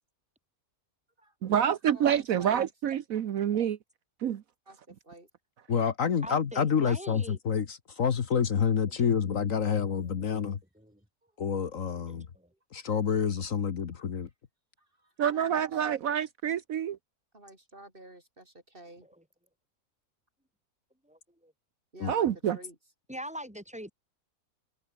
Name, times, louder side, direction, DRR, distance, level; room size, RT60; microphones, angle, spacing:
voice 1, 1.4-3.8 4.2-4.4 15.2-17.0 22.1-22.6, right 9 dB, 70° right, 1.3 m, -27 dB
voice 2, 4.7-5.3 11.2-11.3 12.5-12.6 14.8-15.9 17.3-18.4 18.7-19.1 21.9-22.3 22.5-22.8, right 1 dB, 35° right, 5.4 m, -50 dB
voice 3, 5.7-10.6 11.4-12.3 12.7-14.3 22.0-22.1, left 7 dB, 65° left, 1.6 m, -28 dB
voice 4, 6.2-7.4 9.6-11.0 11.9-12.5 21.0-21.5 23.1-23.9, equal, 5° right, 6.1 m, -44 dB
omnidirectional pair, 1.5 m